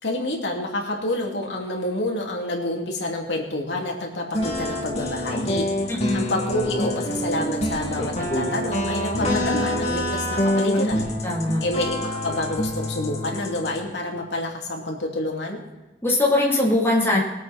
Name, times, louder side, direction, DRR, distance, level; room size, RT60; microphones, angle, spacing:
voice 1, 0.0-5.6 6.1-11.1 11.6-15.6, left 1 dB, 90° left, 0 dB, 2.7 m, -28 dB
sound 1, 4.3-13.8, left 1 dB, 40° left, 2.5 m, -26 dB
voice 2, 5.9-6.3 11.2-11.6 16.0-17.2, left 2 dB, 15° left, -5 dB, 3.2 m, -21 dB
22.0 x 8.2 x 4.3 m, 1.1 s
head